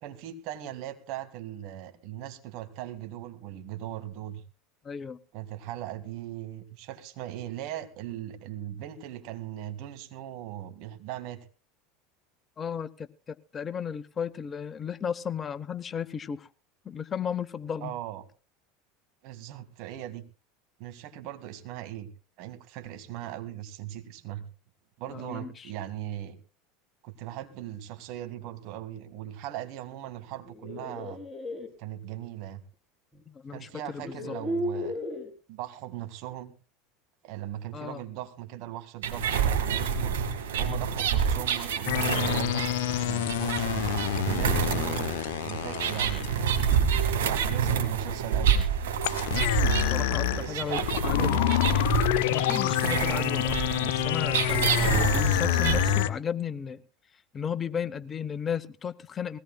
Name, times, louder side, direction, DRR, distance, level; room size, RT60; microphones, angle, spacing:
voice 1, 0.0-4.4 5.3-11.4 17.8-18.2 19.2-20.2 20.8-22.1 22.4-24.4 25.0-26.4 27.0-31.2 31.8-32.6 33.5-34.9 35.5-36.5 37.2-40.2 40.6-42.6 43.0-45.1 45.4-46.5 47.3-48.7 50.4-51.8 55.3-55.5, right 13 dB, 60° right, 8 dB, 2.1 m, -39 dB
voice 2, 4.8-5.2 12.6-16.5 16.8-17.9 25.1-25.7 33.3-34.4 37.7-38.0 49.5-50.8 51.1-51.4 52.3-56.8 57.3-59.4, left 7 dB, 30° left, 16 dB, 0.8 m, -34 dB
sound 1, 30.3-31.7 33.1-33.2 33.9-35.3, left 1 dB, 10° left, 3.6 m, -34 dB
sound 2, 39.0-56.0, right 7 dB, 75° right, 2.1 m, -28 dB
sound 3, 41.9-46.8 49.0-56.1, left 13 dB, 65° left, 0.8 m, -27 dB
21.0 x 17.0 x 2.3 m, 0.32 s
hypercardioid pair, 80°, 0 cm